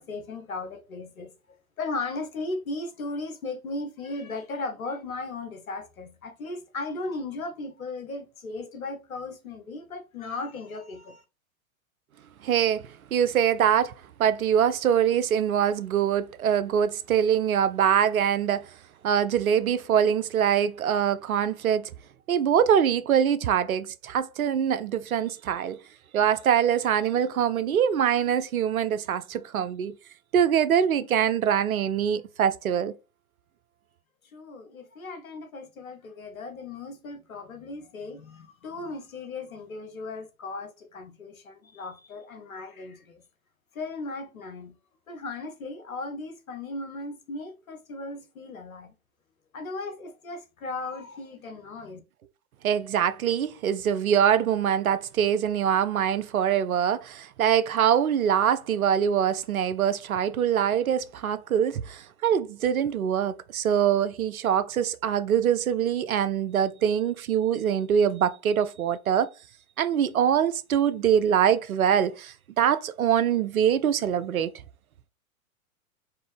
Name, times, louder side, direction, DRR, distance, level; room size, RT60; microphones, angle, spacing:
voice 1, 0.0-1.3 1.8-11.2 34.3-43.2 43.7-44.7 45.1-48.9 49.5-52.0, left 3 dB, 80° left, 1.0 m, -36 dB
voice 2, 12.4-18.7 19.0-21.9 22.3-25.8 26.1-29.9 30.3-32.9 52.6-69.3 69.8-74.5, right 9 dB, 85° right, 0.5 m, -24 dB
4.4 x 2.5 x 3.3 m
figure-of-eight pair, 100°, 41 cm